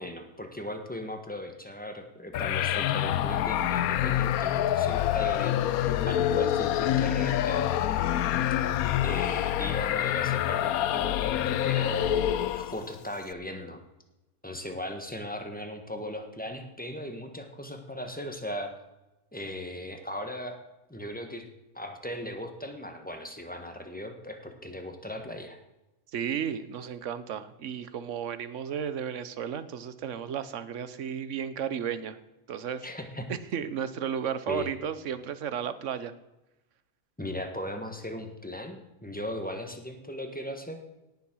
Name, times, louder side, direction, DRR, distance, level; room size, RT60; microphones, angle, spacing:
voice 1, 0.0-7.6 9.0-13.8 14.4-18.7 19.3-20.6 20.9-21.5 21.7-25.6 32.8-33.3 34.5-34.7 37.2-40.8, left 1 dB, 5° left, 5 dB, 1.4 m, -38 dB
sound 1, 2.3-12.9, left 11 dB, 85° left, 1.1 m, -26 dB
voice 2, 26.1-32.2 32.5-32.9 33.3-36.1, right 8 dB, 60° right, 13 dB, 1.1 m, -33 dB
18.0 x 7.1 x 6.2 m, 0.97 s
omnidirectional pair, 1.5 m